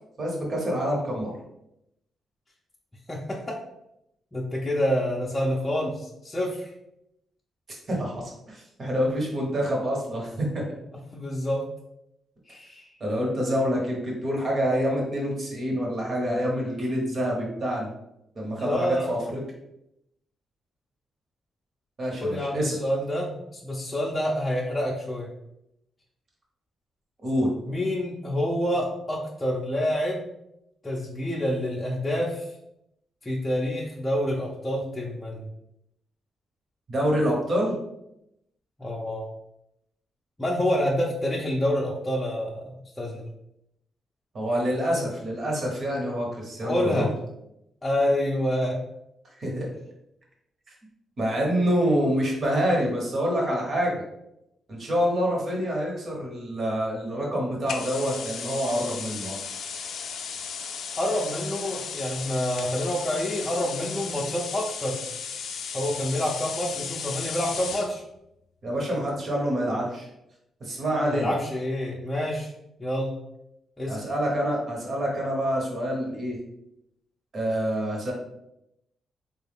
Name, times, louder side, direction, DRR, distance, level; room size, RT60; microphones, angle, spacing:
voice 1, 0.2-1.3 7.9-10.6 13.0-17.9 18.3-19.4 22.0-22.8 27.2-27.5 36.9-37.8 44.3-47.1 49.4-49.7 50.7-50.8 51.2-54.0 54.7-59.4 68.6-70.1 70.6-71.3 73.9-76.4 77.3-78.1, equal, 50° right, -2 dB, 1.2 m, -26 dB
voice 2, 3.1-3.6 4.3-6.7 11.1-11.6 12.5-12.9 18.6-19.1 22.2-25.3 27.7-30.3 30.8-32.4 33.2-35.5 38.8-39.3 40.4-43.3 46.6-47.1 47.8-48.8 61.0-65.0 65.7-68.0 71.1-72.5 72.8-73.1 73.8-74.0, equal, 20° left, -4 dB, 0.6 m, -27 dB
sound 1, 57.7-67.9, left 6 dB, 70° left, 0.3 m, -35 dB
3.4 x 2.4 x 3.4 m, 0.84 s
cardioid pair, 75°, 0 cm